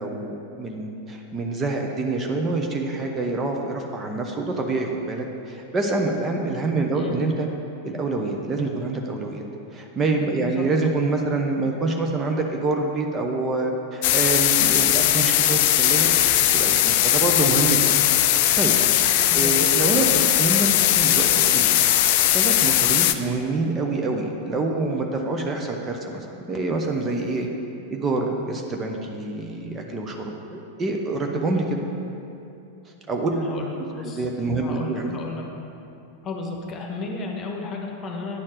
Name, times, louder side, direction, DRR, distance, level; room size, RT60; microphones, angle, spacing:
voice 1, 0.0-7.5 7.8-9.4 9.7-17.8 18.1-20.7 21.0-21.8 22.3-27.5 27.9-31.8 33.1-33.3 34.0-35.2, right 3 dB, 20° right, 1 dB, 0.8 m, -26 dB
voice 2, 6.7-7.2 10.4-10.6 19.3-19.5 33.3-34.3 34.5-35.4 36.2-38.4, left 3 dB, 30° left, 1 dB, 1.2 m, -33 dB
sound 1, 14.0-23.1, left 12 dB, 50° left, 0.4 m, -19 dB
9.7 x 4.4 x 7.3 m, 2.7 s
figure-of-eight pair, 90°, 0 cm